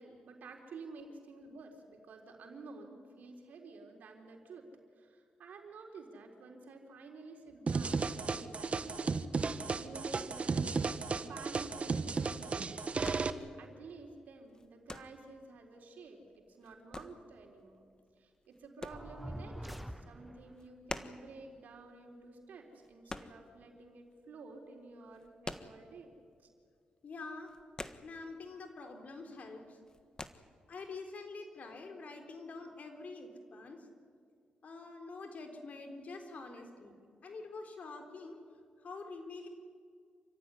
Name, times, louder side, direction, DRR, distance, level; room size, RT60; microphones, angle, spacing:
voice 1, 0.0-4.7 5.0-12.9 13.6-16.2 16.5-17.9 18.2-26.1 26.4-26.5, right 3 dB, 75° right, 3 dB, 4.0 m, -51 dB
sound 1, 7.7-13.3, right 4 dB, 45° right, 1.3 m, -34 dB
sound 2, 12.4-24.1 24.4-26.3 26.6-26.8 27.0-28.6 28.9-29.4 29.7-30.3, left 2 dB, 25° left, 1.5 m, -47 dB
sound 3, 18.9-20.6, equal, ahead, 1.1 m, -45 dB
voice 2, 27.0-27.5 28.0-29.8 30.7-33.9 34.6-37.0 37.2-38.4 38.8-39.5, left 3 dB, 60° left, 4 dB, 4.0 m, -46 dB
28.0 x 15.5 x 9.9 m, 2.2 s
cardioid pair, 60°, 3 cm